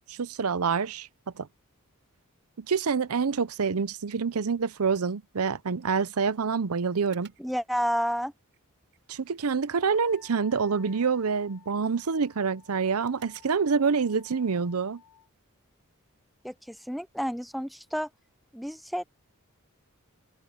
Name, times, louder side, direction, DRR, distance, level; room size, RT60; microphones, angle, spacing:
voice 1, 0.1-1.1 1.4-1.5 2.6-7.3 9.1-15.0, right 5 dB, 75° right, 0.7 m, -27 dB
sound 1, 7.0-13.7, right 8 dB, 55° right, 7.9 m, -61 dB
voice 2, 7.4-8.3 16.4-18.1 18.5-19.0, equal, ahead, 0.5 m, -30 dB
Wind instrument woodwind instrument, 9.7-15.3, left 8 dB, 65° left, 2.1 m, -55 dB
head